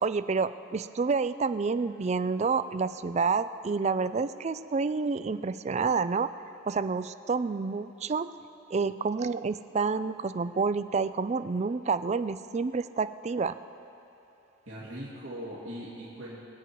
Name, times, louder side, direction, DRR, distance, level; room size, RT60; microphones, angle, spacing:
voice 1, 0.0-6.3 6.7-8.3 8.7-13.5, right 4 dB, 35° right, 13 dB, 0.3 m, -29 dB
voice 2, 14.7-16.4, equal, 75° right, -8 dB, 2.8 m, -40 dB
24.5 x 9.1 x 4.7 m, 2.9 s
head